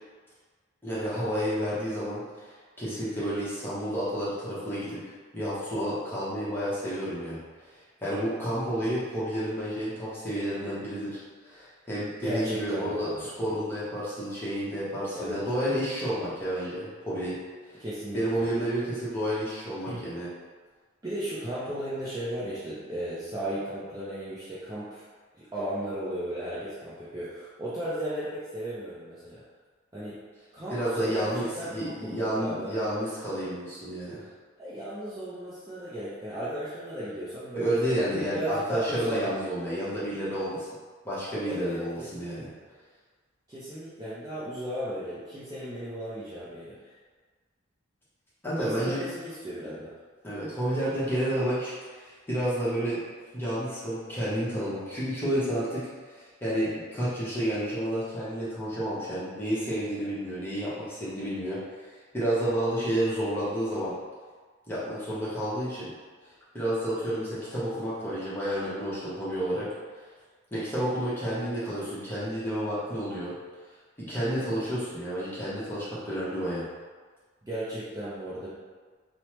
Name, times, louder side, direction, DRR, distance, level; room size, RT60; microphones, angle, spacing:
voice 1, 0.8-2.2 2.8-5.0 5.3-7.4 8.0-13.1 13.4-17.4 17.6-17.8 18.1-20.3 30.7-34.2 37.6-40.7 41.0-42.5 48.4-49.0 50.2-53.0 53.3-61.6 62.1-63.9 64.7-65.9 66.5-69.7 70.5-73.3 74.0-76.6, equal, 10° left, -10 dB, 0.8 m, -30 dB
voice 2, 12.2-13.3 15.1-15.4 17.8-18.5 19.9-20.0 21.0-25.1 25.4-29.4 29.9-30.2 30.5-33.1 34.6-37.7 38.3-39.3 41.5-41.9 42.1-42.5 43.5-47.0 48.6-49.9 77.4-78.5, right 1 dB, 20° right, -11 dB, 0.4 m, -35 dB
3.0 x 2.0 x 3.0 m, 1.5 s
head